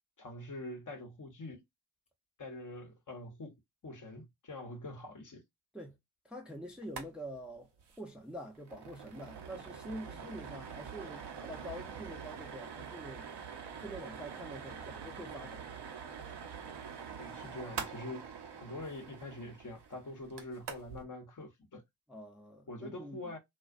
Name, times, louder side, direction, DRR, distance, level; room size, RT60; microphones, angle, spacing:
voice 1, 0.2-1.6 2.4-3.6 3.8-5.4 17.2-18.3 18.6-21.8 22.7-23.4, left 2 dB, 40° left, 0.9 m, -44 dB
voice 2, 6.2-7.7 8.0-13.3 13.8-15.6 22.1-23.3, equal, ahead, 0.6 m, -46 dB
sound 1, 6.8-7.1 7.4-7.5 7.8-8.0 8.4-21.0, right 6 dB, 60° right, 0.8 m, -45 dB
2.4 x 2.2 x 2.4 m
supercardioid pair, 40°, 47 cm